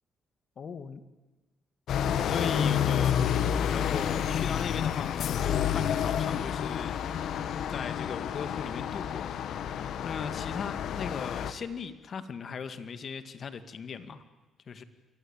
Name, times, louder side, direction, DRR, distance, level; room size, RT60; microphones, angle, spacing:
voice 1, 0.6-1.0 1.9-3.2 3.6-7.0 7.7-9.3 10.0-14.2 14.7-14.8, left 6 dB, 50° left, 11 dB, 2.1 m, -38 dB
sound 1, 1.9-11.5, left 9 dB, 75° left, 1.7 m, -29 dB
28.0 x 22.5 x 8.9 m, 1.1 s
cardioid pair, 90°, 0 cm